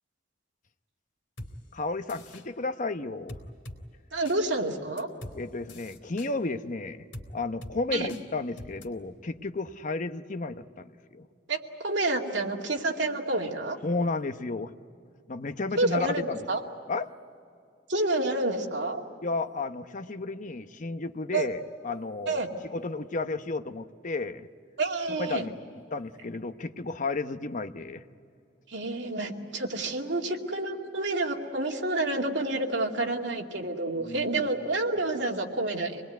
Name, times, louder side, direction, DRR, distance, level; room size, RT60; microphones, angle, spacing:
sound 1, 1.4-1.5 2.1-2.5 3.3-3.8 4.3-4.4 5.0-5.4 5.7-6.3 7.1-7.3 7.6-7.8 8.1-8.2 8.6-8.9, left 1 dB, 85° left, 2.7 m, -42 dB
voice 1, 1.7-3.4 5.3-7.1 7.3-11.3 13.8-14.7 15.3-16.6 16.9-17.1 19.2-22.4 22.7-24.5 25.1-25.6 25.9-28.0 34.0-34.4, left 3 dB, 45° left, 9 dB, 0.9 m, -33 dB
voice 2, 4.1-5.1 7.9-8.1 11.5-13.8 15.8-16.6 17.9-19.0 21.3-21.5 22.3-22.5 24.8-25.4 28.7-36.0, right 2 dB, 75° right, 0 dB, 2.5 m, -29 dB
26.5 x 20.5 x 9.3 m, 2.4 s
head